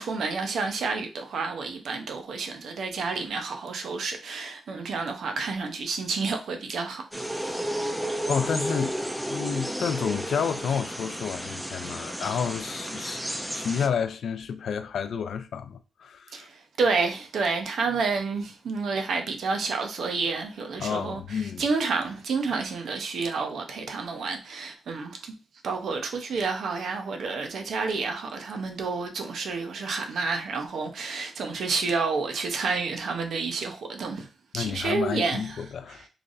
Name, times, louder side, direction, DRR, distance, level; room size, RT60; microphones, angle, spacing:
voice 1, 0.0-7.5 16.3-25.3 25.6-34.3 34.5-35.6, right 4 dB, 75° right, 0.7 m, -30 dB
sound 1, 7.1-13.9, right 1 dB, 5° right, 0.4 m, -32 dB
voice 2, 8.3-9.0 9.3-16.5 20.8-21.6 34.5-36.1, left 7 dB, 75° left, 0.4 m, -30 dB
3.3 x 2.5 x 3.9 m
cardioid pair, 100°, 0 cm